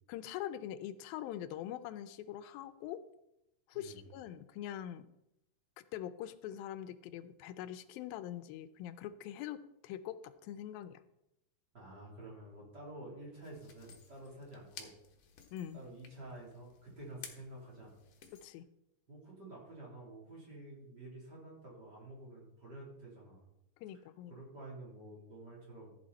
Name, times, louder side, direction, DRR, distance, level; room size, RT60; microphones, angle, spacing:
voice 1, 0.1-3.0 3.7-5.1 5.9-11.0 15.5-15.8 18.3-18.7 23.8-24.3, left 11 dB, 90° left, 11 dB, 2.5 m, -43 dB
voice 2, 11.7-14.9 15.7-17.9 19.1-23.5 24.3-26.0, right 1 dB, 30° right, -5 dB, 4.0 m, -50 dB
sound 1, 13.4-18.5, left 6 dB, 55° left, 2.1 m, -55 dB
14.5 x 8.3 x 4.3 m, 0.85 s
omnidirectional pair, 4.1 m